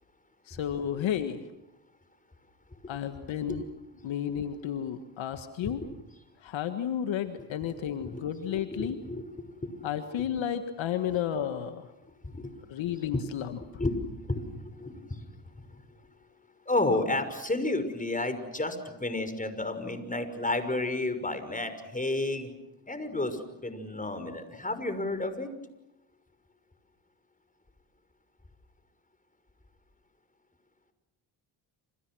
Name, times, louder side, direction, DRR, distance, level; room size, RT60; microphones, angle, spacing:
voice 1, 0.5-1.4 2.9-3.6 4.0-5.8 6.4-9.0 9.8-11.9 12.7-13.6, left 9 dB, 65° left, 9 dB, 1.7 m, -32 dB
voice 2, 8.0-9.2 9.6-9.9 10.2-10.3 11.1-11.2 12.2-12.5 13.8-14.0 14.2-15.3 15.6-15.8 16.7-22.5 22.9-25.5, left 2 dB, 15° left, 9 dB, 6.0 m, -32 dB
28.5 x 28.5 x 6.3 m, 0.92 s
supercardioid pair, 60°, 48 cm